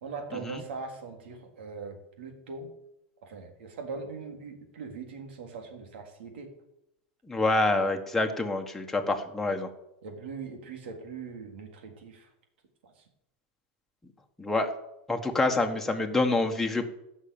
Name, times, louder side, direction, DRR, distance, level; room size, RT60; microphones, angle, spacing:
voice 1, 0.0-2.7 3.2-6.5 8.9-9.2 10.0-12.3 12.8-12.9, right 4 dB, 80° right, 3 dB, 3.8 m, -41 dB
voice 2, 7.3-9.7 14.4-14.7 15.1-16.8, left 2 dB, 5° left, 2 dB, 1.5 m, -26 dB
15.5 x 6.5 x 8.9 m, 0.85 s
supercardioid pair, 145°, 6 cm